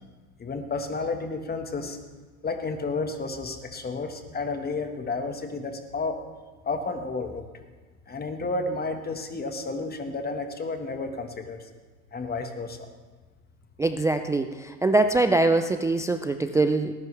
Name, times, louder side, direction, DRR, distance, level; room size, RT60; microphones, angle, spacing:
voice 1, 0.4-2.0 2.4-6.2 6.6-7.4 8.1-11.6 12.1-12.8, left 3 dB, 20° left, 5 dB, 1.6 m, -31 dB
voice 2, 13.8-16.9, right 2 dB, 10° right, 7 dB, 0.3 m, -23 dB
18.5 x 10.5 x 3.4 m, 1.4 s
hypercardioid pair, 95°, 44 cm